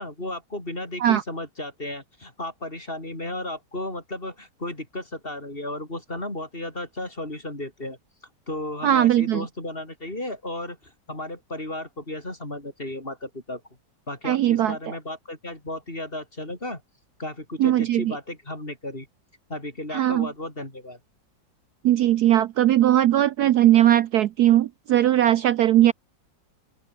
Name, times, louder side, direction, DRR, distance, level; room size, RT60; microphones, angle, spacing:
voice 1, 0.0-8.0 8.5-13.6 14.1-16.8 17.2-19.1 19.5-21.0, left 1 dB, 30° left, 5.9 m, -34 dB
voice 2, 8.8-9.5 14.2-14.8 17.6-18.1 19.9-20.3 21.8-25.9, right 12 dB, 65° right, 1.1 m, -19 dB
open air
omnidirectional pair, 2.0 m